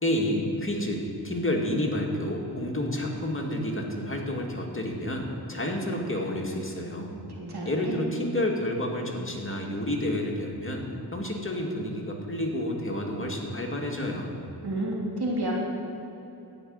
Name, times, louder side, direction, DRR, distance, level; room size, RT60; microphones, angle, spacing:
voice 1, 0.0-7.1 7.7-14.4, left 1 dB, 30° left, 0 dB, 2.0 m, -30 dB
voice 2, 7.4-7.9 14.6-15.5, right 1 dB, 65° right, -3 dB, 3.0 m, -30 dB
15.0 x 5.2 x 9.4 m, 2.9 s
cardioid pair, 55°, 42 cm